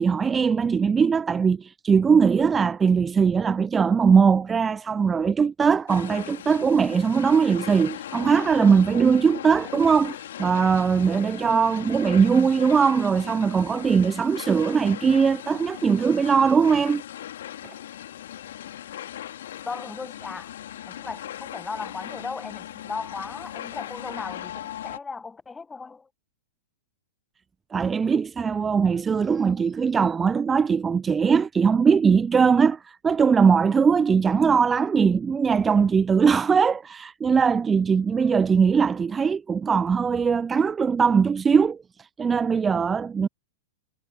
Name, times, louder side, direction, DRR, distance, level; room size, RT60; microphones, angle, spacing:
voice 1, 0.0-17.0 27.7-41.8 42.2-43.3, right 6 dB, 15° right, 0.3 m, -20 dB
sound 1, 5.9-25.0, left 11 dB, 65° left, 3.6 m, -38 dB
voice 2, 19.6-20.5 20.9-26.1, left 4 dB, 15° left, 1.3 m, -36 dB
figure-of-eight pair, 100°, 0 cm